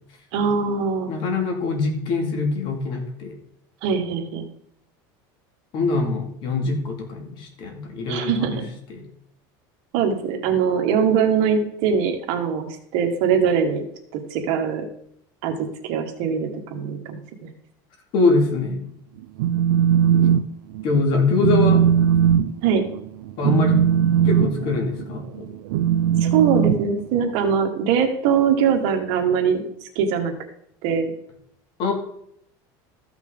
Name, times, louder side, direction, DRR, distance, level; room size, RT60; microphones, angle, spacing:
voice 1, 0.3-1.1 3.8-4.5 8.1-8.7 9.9-13.8 14.1-14.8 15.4-17.5 22.6-22.8 26.2-29.6 30.0-30.3 30.8-31.1, right 6 dB, 60° right, 5 dB, 1.7 m, -22 dB
voice 2, 1.1-3.3 5.7-8.6 8.9-9.0 18.1-18.8 20.8-21.8 23.4-23.8 24.2-25.5 31.8-31.9, left 4 dB, 50° left, 2 dB, 2.6 m, -23 dB
Telephone, 19.2-20.4 20.7-21.0 21.4-27.5, right 9 dB, 90° right, 0.5 m, -19 dB
14.0 x 5.9 x 3.9 m, 0.70 s
supercardioid pair, 145°, 11 cm